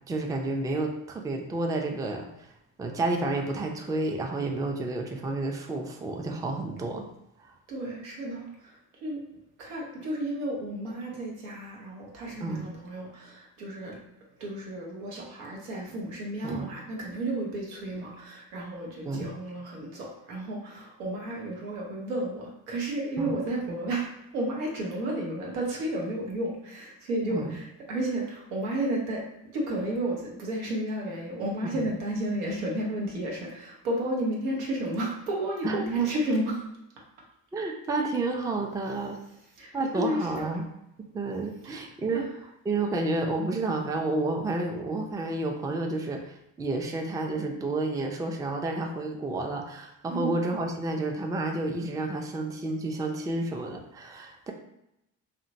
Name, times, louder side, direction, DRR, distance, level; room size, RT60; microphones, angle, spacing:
voice 1, 0.1-2.5 2.8-7.1 12.4-12.7 16.4-16.7 19.0-19.4 23.2-23.3 27.3-27.6 31.7-31.8 35.6-36.1 37.5-39.2 39.7-40.6 41.1-42.3 42.7-54.5, right 2 dB, 10° right, 3 dB, 0.3 m, -30 dB
voice 2, 7.7-9.2 9.6-14.0 14.4-24.1 24.3-29.2 29.5-36.7 39.6-40.5 41.6-41.7 42.1-42.2 50.1-50.4, right 1 dB, 85° right, -2 dB, 0.7 m, -32 dB
2.7 x 2.1 x 2.6 m, 0.84 s
hypercardioid pair, 45°, 42 cm